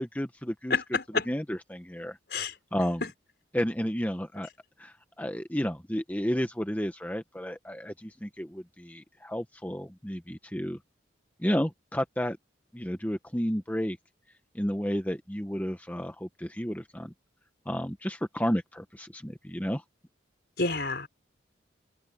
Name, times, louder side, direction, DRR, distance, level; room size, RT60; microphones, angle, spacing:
voice 1, 0.0-0.8 1.3-2.2 2.7-3.0 3.5-4.5 4.8-10.8 11.4-12.4 12.7-14.0 14.5-17.1 17.6-19.8, equal, 10° left, 1.2 m, -32 dB
voice 2, 0.7-1.3 2.3-2.5 3.0-3.1 20.6-21.1, left 4 dB, 60° left, 5.3 m, -28 dB
head